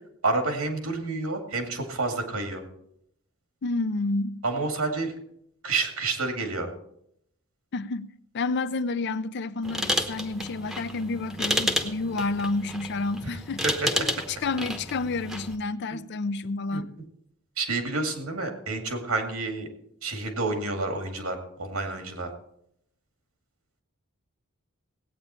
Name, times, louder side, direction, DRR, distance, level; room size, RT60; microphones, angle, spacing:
voice 1, 0.2-2.6 4.4-5.1 5.6-6.7 13.6-13.9 16.7-16.8 17.6-19.7 20.0-22.3, right 3 dB, 85° right, 2.3 m, -29 dB
voice 2, 3.6-4.4 7.7-8.1 8.3-13.6 14.0-16.9, left 3 dB, 50° left, 0.5 m, -30 dB
sound 1, 9.6-15.6, equal, ahead, 0.9 m, -31 dB
17.5 x 8.9 x 4.4 m
head